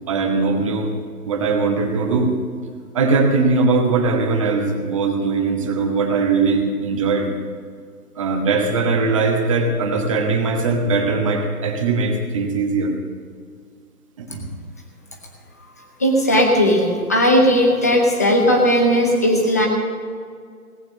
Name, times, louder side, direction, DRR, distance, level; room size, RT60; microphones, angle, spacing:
voice 1, 0.1-0.9 1.2-2.3 2.9-7.3 8.2-12.9 14.2-14.4, right 4 dB, 20° right, 3 dB, 1.2 m, -20 dB
voice 2, 16.0-19.7, equal, 10° left, 1 dB, 0.7 m, -16 dB
18.0 x 8.8 x 6.3 m, 2.1 s
figure-of-eight pair, 150°, 46 cm